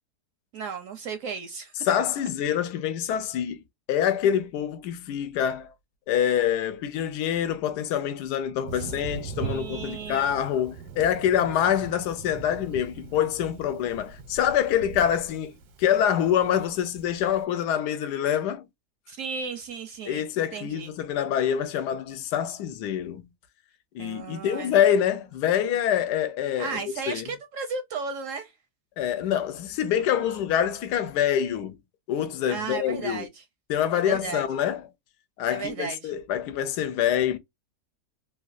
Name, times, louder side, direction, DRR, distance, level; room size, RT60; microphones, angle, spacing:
voice 1, 0.5-1.7 8.7-8.9 9.4-10.4 11.7-11.8 19.1-20.2 20.5-20.9 24.0-24.8 26.6-28.5 32.5-33.4 33.9-34.4 35.5-36.1, right 5 dB, 70° right, 0.8 m, -35 dB
voice 2, 1.8-3.6 3.9-5.7 6.1-18.6 20.1-23.3 23.9-26.8 27.1-27.3 29.0-31.8 32.1-33.2 33.7-34.9 35.4-37.4, left 9 dB, 85° left, 1.2 m, -26 dB
Thunder, 8.7-17.4, right 5 dB, 85° right, 1.3 m, -40 dB
3.1 x 2.3 x 2.4 m
omnidirectional pair, 1.7 m